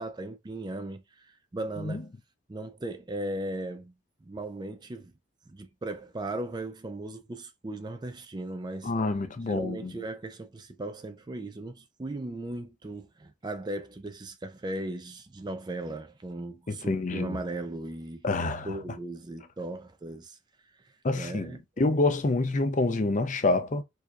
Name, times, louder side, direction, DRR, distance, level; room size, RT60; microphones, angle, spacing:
voice 1, 0.0-2.1 2.5-3.9 4.2-5.1 5.5-8.9 9.5-18.3 18.6-20.4 21.1-21.6, right 2 dB, 20° right, 0.4 m, -37 dB
voice 2, 8.8-9.9 16.7-17.4 18.2-18.7 21.0-23.8, left 2 dB, 35° left, 0.5 m, -27 dB
4.6 x 2.8 x 2.3 m
head